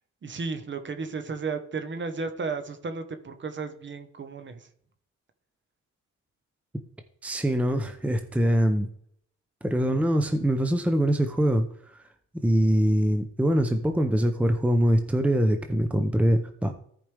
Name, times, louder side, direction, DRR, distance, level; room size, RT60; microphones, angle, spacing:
voice 1, 0.2-4.7, right 4 dB, 40° right, 9 dB, 1.2 m, -34 dB
voice 2, 7.2-8.9 9.6-11.6 11.9-12.0 12.4-16.7, equal, 5° right, 7 dB, 0.8 m, -23 dB
14.0 x 5.2 x 3.5 m, 0.65 s
cardioid pair, 90°, 30 cm